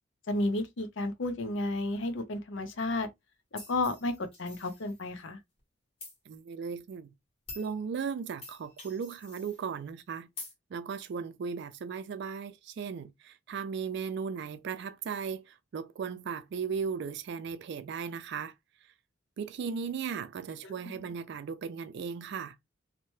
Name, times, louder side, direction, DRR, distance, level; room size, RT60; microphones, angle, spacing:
voice 1, 0.3-3.1 3.7-5.4 20.6-20.7, left 2 dB, 65° left, 0.6 m, -32 dB
sound 1, 3.6-5.2 6.0-6.2 6.9-7.0 7.5-7.7 8.4-9.6 10.4-10.5, left 2 dB, 25° left, 1.4 m, -47 dB
voice 2, 6.3-7.1 7.6-10.3 10.7-18.5 19.4-22.6, right 6 dB, 55° right, 0.3 m, -36 dB
2.8 x 2.1 x 3.1 m
head